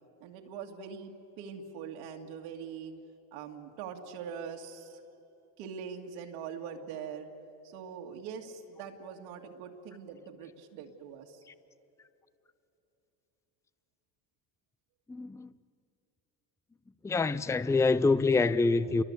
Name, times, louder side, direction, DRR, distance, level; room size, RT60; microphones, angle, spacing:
voice 1, 0.2-2.9 3.3-5.0 5.6-7.3 7.6-11.4, right 7 dB, 85° right, 2.4 m, -43 dB
voice 2, 15.1-15.5 17.0-19.0, left 3 dB, 10° left, 0.5 m, -26 dB
29.0 x 23.5 x 8.2 m
cardioid pair, 120°, 38 cm